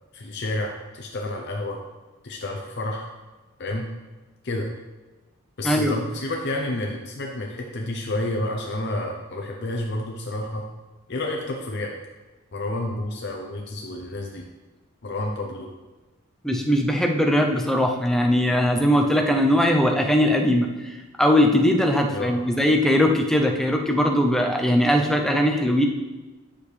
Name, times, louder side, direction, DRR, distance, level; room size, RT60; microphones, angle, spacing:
voice 1, 0.1-1.8 2.2-3.1 3.6-3.9 4.4-4.7 5.6-10.7 11.1-11.9 12.5-14.4 15.0-15.7 22.1-22.4, left 1 dB, 50° left, 1 dB, 0.8 m, -30 dB
voice 2, 5.6-6.0 16.4-20.9 21.2-25.9, equal, ahead, 2 dB, 0.6 m, -20 dB
9.8 x 6.5 x 3.3 m, 1.2 s
head